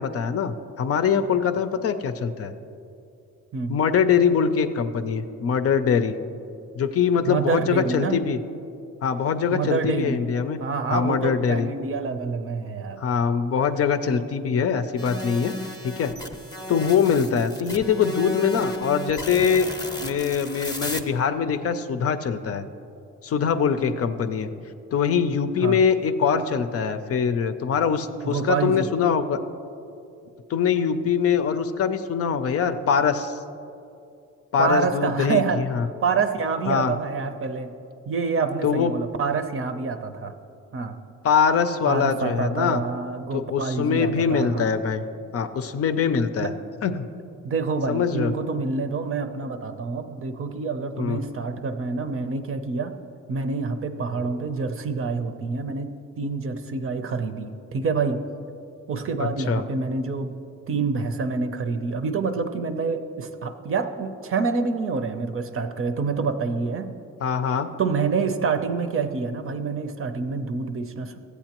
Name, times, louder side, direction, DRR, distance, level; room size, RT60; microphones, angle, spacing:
voice 1, 0.0-2.5 3.7-6.1 6.8-8.4 9.0-10.6 10.9-11.7 13.0-15.5 15.8-16.1 16.7-19.7 20.0-22.6 23.2-24.5 24.9-29.4 30.5-33.4 34.5-35.8 36.7-36.9 38.6-38.9 41.2-42.8 43.3-45.0 45.3-46.5 46.8-47.0 47.9-48.3 51.0-51.2 59.2-59.6 67.2-67.7, left 6 dB, 50° left, 9 dB, 0.5 m, -23 dB
voice 2, 7.3-8.2 9.5-10.2 10.6-13.0 25.6-25.8 28.2-28.9 34.6-35.6 36.0-37.7 38.1-40.3 40.7-41.0 41.8-44.7 46.4-46.5 47.4-52.9 53.3-58.2 58.9-60.4 60.7-66.9 67.8-71.2, right 4 dB, 45° right, 8 dB, 0.7 m, -27 dB
sound 1, 15.0-21.0, left 1 dB, 15° left, 0.8 m, -34 dB
14.0 x 8.3 x 3.0 m, 2.6 s
cardioid pair, 90°, 30 cm